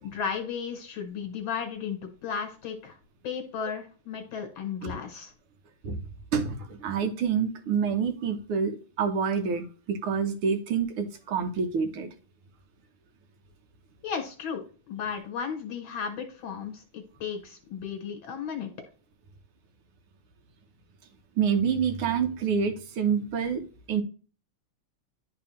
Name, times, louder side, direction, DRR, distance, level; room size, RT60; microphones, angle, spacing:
voice 1, 0.0-3.0 3.2-5.3 14.0-18.7, left 6 dB, 65° left, 5 dB, 1.8 m, -34 dB
voice 2, 6.3-12.1 21.4-23.6 23.9-24.0, right 6 dB, 75° right, 6 dB, 1.9 m, -27 dB
10.5 x 4.0 x 3.1 m, 0.37 s
omnidirectional pair, 2.4 m